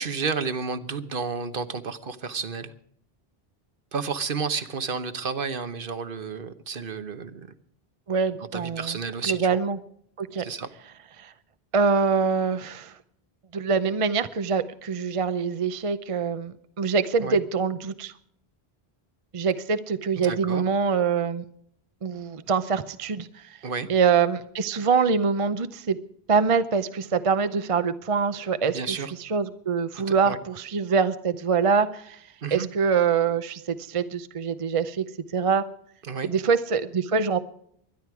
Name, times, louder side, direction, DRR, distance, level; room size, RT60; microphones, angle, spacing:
voice 1, 0.0-2.7 3.9-7.5 8.5-9.6 10.4-10.7 17.2-17.4 20.2-20.6 23.6-23.9 28.7-29.1 29.9-30.4 32.4-32.7 36.0-36.3, right 5 dB, 60° right, 11 dB, 1.1 m, -31 dB
voice 2, 8.1-9.0 9.2-9.8 10.2-10.4 11.2-11.3 11.7-12.9 13.5-18.1 19.3-21.4 22.0-23.3 23.9-26.0 26.3-28.8 29.3-32.2 32.5-35.0 35.3-35.6 36.2-37.4, right 5 dB, 35° right, 12 dB, 0.6 m, -24 dB
22.5 x 11.0 x 4.8 m, 0.67 s
omnidirectional pair, 1.1 m